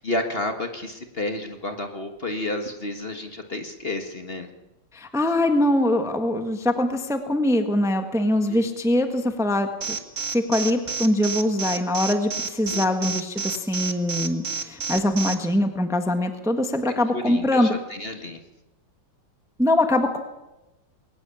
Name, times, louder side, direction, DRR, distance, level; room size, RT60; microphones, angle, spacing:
voice 1, 0.0-4.5 8.5-8.6 12.7-12.9 16.8-18.4, left 2 dB, 35° left, 5 dB, 1.6 m, -31 dB
voice 2, 4.9-10.0 10.3-17.7 19.6-20.2, left 1 dB, ahead, 6 dB, 1.3 m, -23 dB
Alarm, 9.8-15.3, right 5 dB, 45° right, 1.8 m, -29 dB
22.0 x 18.5 x 7.1 m, 1.0 s
omnidirectional pair, 2.0 m